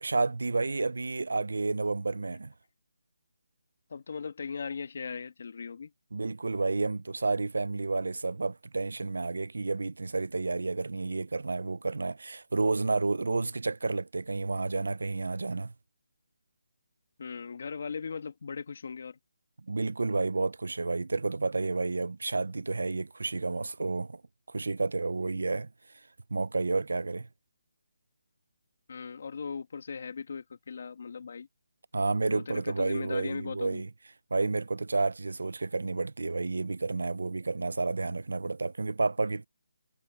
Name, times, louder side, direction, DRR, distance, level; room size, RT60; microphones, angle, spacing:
voice 1, 0.0-2.5 6.1-15.7 19.7-24.2 24.5-25.7 26.3-27.3 31.9-33.9 34.3-39.5, right 3 dB, 85° right, 0.6 m, -30 dB
voice 2, 3.9-5.9 17.2-19.2 28.9-31.5 32.3-33.8, left 5 dB, 40° left, 2.1 m, -38 dB
hypercardioid pair, 180°, 0 cm